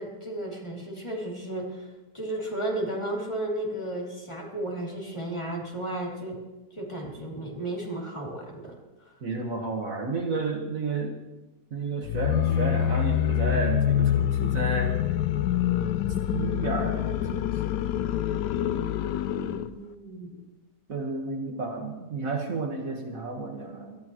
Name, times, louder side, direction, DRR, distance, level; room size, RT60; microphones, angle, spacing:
voice 1, 0.0-6.4 6.7-9.1 19.4-20.3, right 1 dB, 15° left, -3 dB, 2.8 m, -34 dB
voice 2, 9.2-11.1 11.7-15.0 16.3-17.5 20.9-24.0, right 3 dB, 55° right, 2 dB, 1.9 m, -31 dB
sound 1, 12.0-19.7, left 11 dB, 85° left, 1.2 m, -26 dB
22.5 x 13.5 x 3.1 m, 1.1 s
omnidirectional pair, 1.8 m